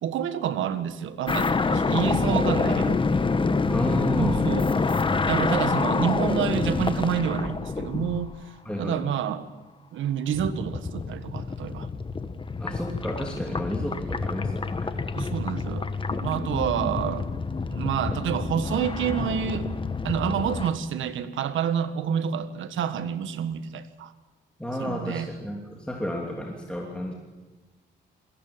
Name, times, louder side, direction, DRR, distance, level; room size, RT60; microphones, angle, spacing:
voice 1, 0.0-3.0 4.2-9.4 9.9-11.9 15.1-17.3 17.7-19.7 20.0-24.1 24.8-25.3, right 8 dB, 75° right, 11 dB, 1.5 m, -28 dB
sound 1, 1.3-8.4 10.3-20.7, left 4 dB, 25° left, 1.3 m, -27 dB
voice 2, 3.7-4.5 8.6-9.0 12.6-15.0 24.6-27.1, equal, 5° left, -1 dB, 3.0 m, -32 dB
21.5 x 16.5 x 8.9 m, 1.2 s
cardioid pair, 90°, 20 cm